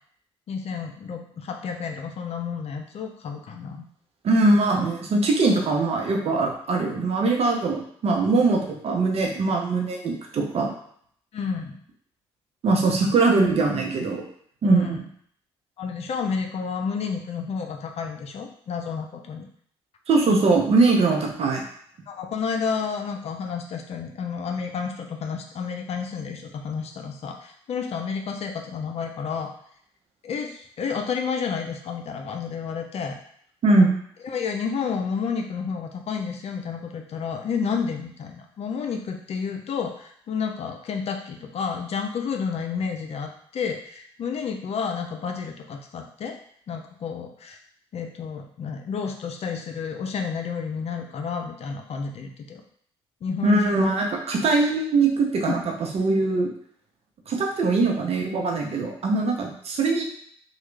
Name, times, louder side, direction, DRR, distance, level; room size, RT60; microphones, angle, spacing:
voice 1, 0.5-3.8 11.3-11.8 14.6-15.0 15.8-19.5 22.1-29.5 30.2-33.2 34.2-46.4 46.7-47.6 47.9-52.6 53.2-53.7 55.5-55.7, left 6 dB, 50° left, 4 dB, 0.5 m, -30 dB
voice 2, 4.2-10.7 12.6-14.3 14.6-15.0 20.1-21.6 33.6-33.9 53.4-56.5 57.3-60.0, right 3 dB, 50° right, 1 dB, 0.8 m, -21 dB
3.1 x 2.3 x 3.3 m, 0.62 s
hypercardioid pair, 50°, 13 cm